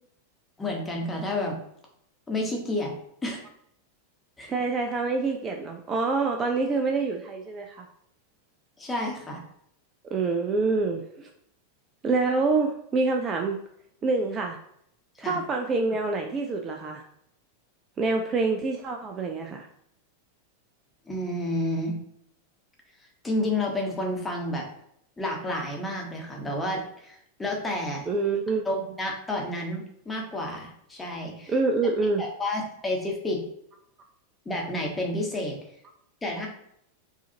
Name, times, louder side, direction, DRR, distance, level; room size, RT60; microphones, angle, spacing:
voice 1, 0.6-1.6 2.3-2.9 3.2-3.4 4.4-4.5 8.8-9.4 15.2-15.4 21.1-22.0 23.2-24.7 25.2-28.1 28.6-31.5 32.2-33.4 34.4-35.6 36.2-36.5, left 1 dB, 10° left, 0 dB, 1.0 m, -30 dB
voice 2, 4.5-7.8 10.1-11.3 12.0-13.6 14.0-14.6 15.2-17.0 18.0-19.7 28.1-28.6 31.5-32.2, right 3 dB, 25° right, 3 dB, 0.4 m, -26 dB
4.7 x 2.5 x 2.8 m, 0.72 s
figure-of-eight pair, 90°, 0 cm